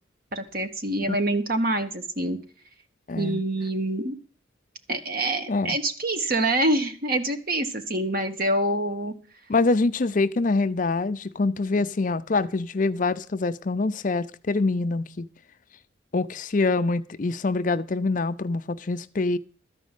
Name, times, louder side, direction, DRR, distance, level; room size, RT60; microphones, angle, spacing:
voice 1, 0.3-2.4 3.2-4.1 4.9-9.1, right 1 dB, 45° right, 1.4 m, -26 dB
voice 2, 3.1-3.4 5.5-5.8 9.5-15.3 16.1-19.4, left 3 dB, 40° left, 0.5 m, -25 dB
13.5 x 5.2 x 9.0 m
head